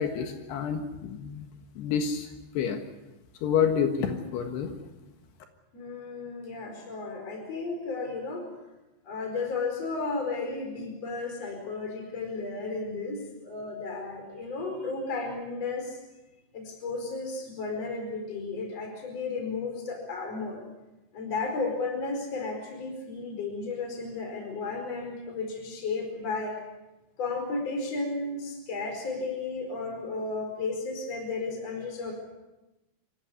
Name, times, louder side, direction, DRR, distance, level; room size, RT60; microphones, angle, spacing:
voice 1, 0.0-1.4 1.8-2.3 2.6-2.8 3.4-4.7, left 7 dB, 85° left, 5 dB, 3.7 m, -28 dB
voice 2, 5.7-8.5 9.0-16.0 16.5-20.6 21.1-26.6 27.2-32.1, left 3 dB, 40° left, 3 dB, 5.6 m, -33 dB
26.0 x 16.0 x 9.6 m, 1.0 s
omnidirectional pair, 4.7 m